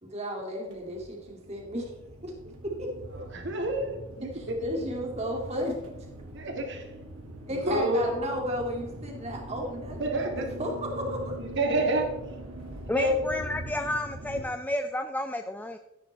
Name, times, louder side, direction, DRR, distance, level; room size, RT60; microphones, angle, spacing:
voice 1, 0.0-1.9 2.2-2.3 2.6-2.9 4.6-5.8 7.5-10.1 10.6-11.3, equal, 30° right, 0 dB, 2.6 m, -33 dB
sound 1, 0.7-14.4, equal, 85° right, 2.1 m, -42 dB
voice 2, 3.2-4.6 6.3-6.9 7.5-8.5 10.0-10.5 11.4-12.1 12.9-13.2, right 1 dB, 55° right, 3 dB, 1.9 m, -29 dB
voice 3, 12.9-15.8, left 1 dB, 5° left, 7 dB, 0.3 m, -31 dB
13.5 x 10.0 x 3.4 m, 0.92 s
head